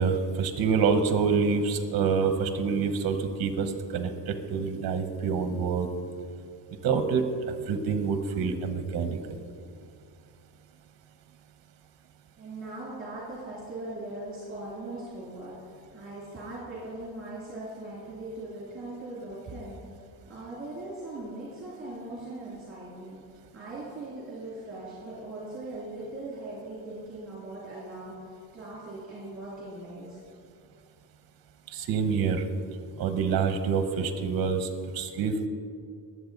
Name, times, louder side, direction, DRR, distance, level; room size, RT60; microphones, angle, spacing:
voice 1, 0.0-5.9 6.8-7.2 7.6-9.2 31.7-32.4 33.0-34.7 34.9-35.5, right 5 dB, 55° right, 8 dB, 1.1 m, -26 dB
voice 2, 12.4-20.0 20.3-23.2 23.5-30.2, right 2 dB, 25° right, -6 dB, 2.8 m, -40 dB
22.0 x 7.9 x 4.0 m, 2.3 s
cardioid pair, 175°, 44 cm